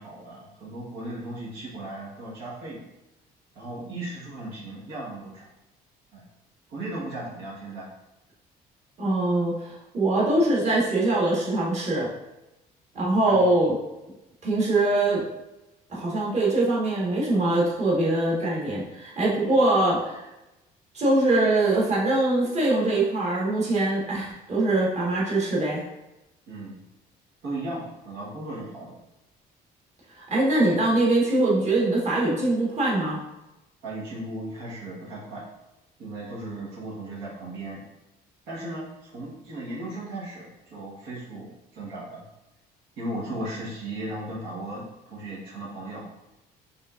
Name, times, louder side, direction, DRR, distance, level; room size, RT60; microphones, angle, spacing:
voice 1, 0.0-2.8 3.5-5.5 6.1-6.2 6.7-7.9 12.9-13.4 26.5-26.8 27.4-29.0 33.8-35.4 36.0-37.8 38.5-42.2 43.0-46.1, right 1 dB, 85° right, -5 dB, 1.4 m, -36 dB
voice 2, 9.0-12.1 12.9-13.7 14.4-15.2 15.9-20.3 20.9-25.8 30.1-33.2, right 2 dB, 40° right, -6 dB, 1.5 m, -23 dB
5.3 x 3.4 x 2.5 m, 0.97 s
cardioid pair, 110°, 17 cm